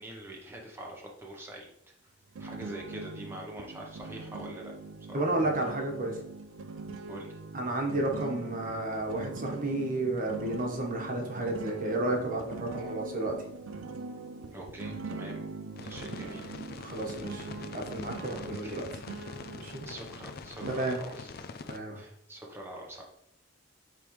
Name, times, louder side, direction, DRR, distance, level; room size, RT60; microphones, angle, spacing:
voice 1, 0.0-1.7 2.4-4.7 5.1-5.3 7.1-7.4 14.5-15.5 15.8-17.0 18.3-18.9 19.8-21.5 22.0-23.0, right 1 dB, 10° right, -1 dB, 0.9 m, -44 dB
sound 1, 2.4-20.8, right 3 dB, 90° right, 0.4 m, -42 dB
voice 2, 5.1-6.2 7.5-13.5 16.7-17.5 17.7-18.9 19.6-19.9 20.7-21.0 21.7-22.0, right 2 dB, 45° right, 1 dB, 1.2 m, -32 dB
sound 2, 15.8-21.8, left 4 dB, 50° left, 0.4 m, -44 dB
8.8 x 3.4 x 3.1 m, 0.75 s
head